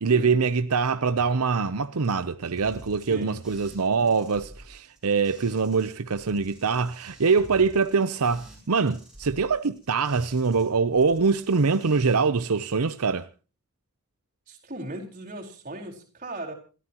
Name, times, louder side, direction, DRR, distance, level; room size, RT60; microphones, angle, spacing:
voice 1, 0.0-13.3, right 5 dB, 85° right, 0.7 m, -24 dB
sound 1, 2.6-5.8 6.1-10.6 10.9-12.1, right 1 dB, 5° right, 7.1 m, -49 dB
voice 2, 3.0-3.4 3.9-4.1 14.5-16.5, right 1 dB, 35° right, 4.5 m, -38 dB
28.0 x 13.5 x 3.0 m
head